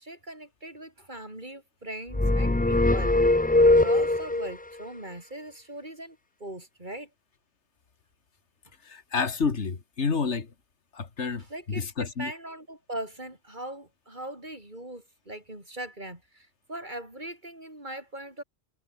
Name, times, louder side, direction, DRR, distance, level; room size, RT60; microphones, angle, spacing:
voice 1, 0.0-3.1 3.6-7.1 11.4-18.4, right 1 dB, 40° right, 5.9 m, -40 dB
sound 1, 2.1-4.5, left 2 dB, 15° left, 0.4 m, -21 dB
voice 2, 8.8-10.5 10.9-12.3, left 5 dB, 75° left, 2.2 m, -29 dB
omnidirectional pair, 1.2 m